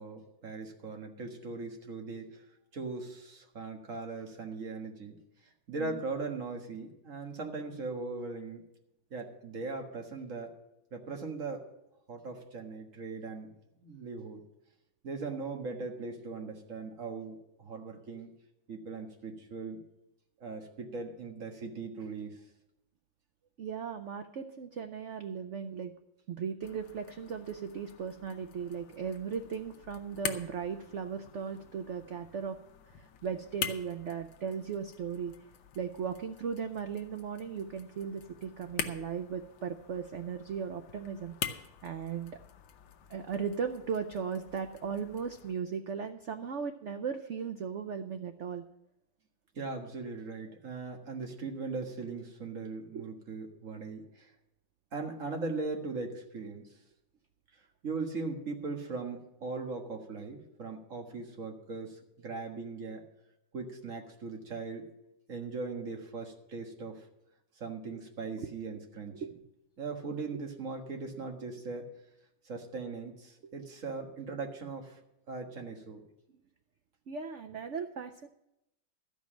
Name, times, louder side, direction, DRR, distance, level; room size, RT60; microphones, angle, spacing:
voice 1, 0.0-2.4 2.7-5.2 5.7-8.6 9.1-10.5 10.9-11.7 12.1-13.5 13.8-14.4 15.0-18.3 18.7-19.8 20.4-22.4 49.5-54.3 54.9-56.7 57.8-63.0 63.5-64.8 65.3-67.0 67.6-69.2 69.8-71.9 72.5-75.0 75.3-76.0, right 4 dB, 45° right, 3 dB, 1.9 m, -39 dB
voice 2, 23.6-25.9 26.3-32.6 33.0-35.3 35.7-41.3 41.8-42.4 43.1-48.6 52.9-53.1 68.4-68.5 69.1-69.4 77.1-78.3, right 6 dB, 85° right, 7 dB, 0.6 m, -37 dB
sound 1, 26.6-45.5, left 8 dB, 75° left, 1.6 m, -45 dB
13.5 x 5.3 x 8.8 m, 0.85 s
omnidirectional pair, 2.1 m